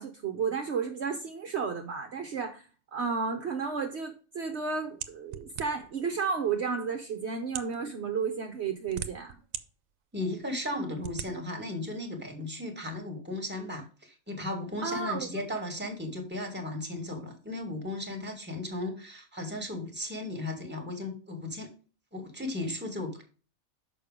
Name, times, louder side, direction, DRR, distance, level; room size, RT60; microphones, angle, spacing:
voice 1, 0.0-9.4 14.8-15.4, right 5 dB, 55° right, 4 dB, 1.1 m, -32 dB
sound 1, 5.0-6.0 6.8-6.9 7.4-7.8 8.6-9.6 10.1-10.2 11.0-11.3, right 9 dB, 75° right, 1.1 m, -38 dB
voice 2, 10.1-21.7 22.1-23.2, left 1 dB, 10° right, 1 dB, 2.1 m, -36 dB
6.6 x 5.4 x 5.1 m, 0.36 s
omnidirectional pair, 1.4 m